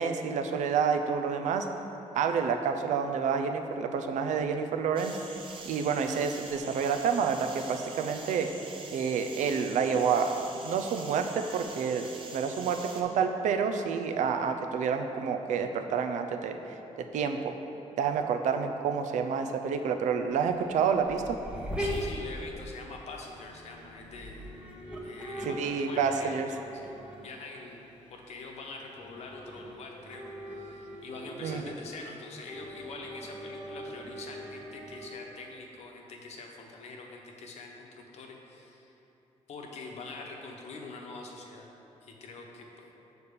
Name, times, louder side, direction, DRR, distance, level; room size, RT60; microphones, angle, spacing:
voice 1, 0.0-1.7 2.1-5.2 5.6-8.5 8.9-16.8 17.1-17.5 18.0-21.4 25.4-26.5 31.4-31.7, right 6 dB, 85° right, 6 dB, 0.6 m, -29 dB
sound 1, 5.0-13.0, right 4 dB, 45° right, 0.8 m, -45 dB
sound 2, 20.3-35.1, equal, 10° right, 0.9 m, -41 dB
voice 2, 21.8-24.6 25.0-26.4 26.7-39.0 39.5-41.7 42.0-42.9, left 3 dB, 60° left, 1 dB, 1.0 m, -44 dB
7.0 x 4.2 x 6.7 m, 3.0 s
cardioid pair, 150°, 12 cm